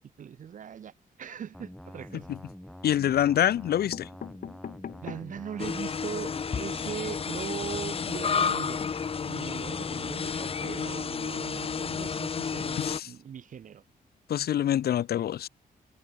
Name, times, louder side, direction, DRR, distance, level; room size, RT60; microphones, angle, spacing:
voice 1, 0.2-2.3 5.0-8.8 9.3-13.8, right 8 dB, 55° right, 1.2 m, -40 dB
sound 1, 1.5-10.6, equal, ahead, 1.2 m, -46 dB
sound 2, 1.9-2.5 3.3-3.4 3.6-5.4 5.9-6.0 6.2-6.3 6.6-6.8, left 8 dB, 65° left, 4.9 m, -43 dB
voice 2, 2.8-4.1 12.8-13.1 14.3-15.5, left 11 dB, 85° left, 0.9 m, -26 dB
sound 3, 5.6-13.0, left 6 dB, 35° left, 1.1 m, -31 dB
wide cardioid pair, 155°, 16 cm